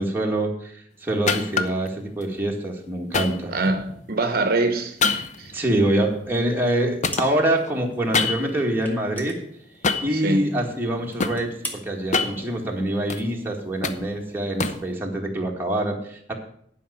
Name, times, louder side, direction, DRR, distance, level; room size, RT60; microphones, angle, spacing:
voice 1, 0.0-3.5 5.5-9.4 10.0-16.3, right 1 dB, 10° right, 1.9 m, -25 dB
sound 1, 1.3-1.9 3.1-4.1 5.0-6.8 7.0-8.7 9.8-10.2 10.8-11.4 11.9-13.2 13.6-14.9, left 4 dB, 45° left, 0.8 m, -26 dB
voice 2, 3.5-5.0 5.4-5.5 10.1-10.6, right 2 dB, 60° right, 1.0 m, -24 dB
sound 2, 7.1-7.7 7.9-8.0 8.8-10.2 10.6-10.7 11.1-11.8, equal, 10° left, 1.6 m, -38 dB
11.0 x 5.5 x 8.2 m
head